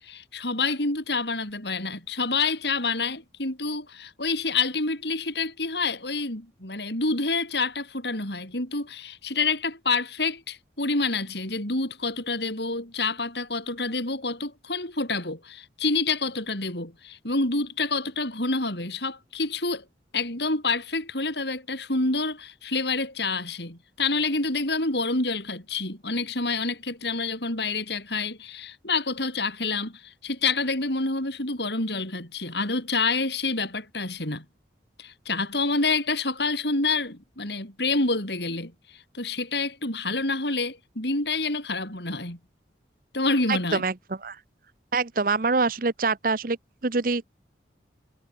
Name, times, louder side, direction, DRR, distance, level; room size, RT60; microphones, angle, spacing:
voice 1, 0.0-19.8 20.1-34.5 35.0-38.7 39.1-42.4 43.1-43.8, left 3 dB, 70° left, 7.1 m, -28 dB
voice 2, 43.5-44.4 44.9-46.6 46.8-47.2, right 4 dB, 50° right, 0.8 m, -25 dB
head